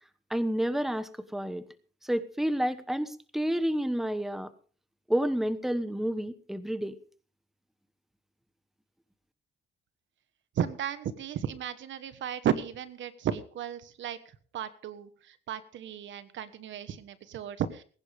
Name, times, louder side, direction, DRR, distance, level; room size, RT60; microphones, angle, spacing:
voice 1, 0.3-1.6 2.0-4.5 5.1-7.0, equal, ahead, 12 dB, 1.1 m, -30 dB
voice 2, 10.5-14.2 14.5-17.8, right 9 dB, 70° right, 13 dB, 1.3 m, -34 dB
20.5 x 10.5 x 3.5 m, 0.42 s
cardioid pair, 90°, 20 cm